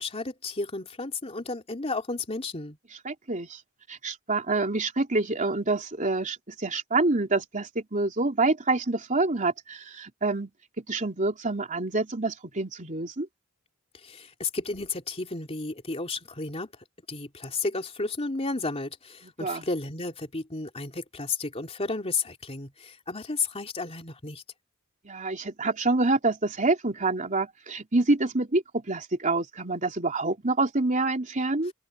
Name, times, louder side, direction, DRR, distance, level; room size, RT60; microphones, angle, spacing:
voice 1, 0.0-2.8 14.0-16.7 17.1-24.4, left 3 dB, 30° left, 3.1 m, -32 dB
voice 2, 3.0-3.6 3.9-10.5 10.8-13.3 19.2-19.6 25.0-31.7, right 3 dB, 35° right, 3.3 m, -27 dB
open air
head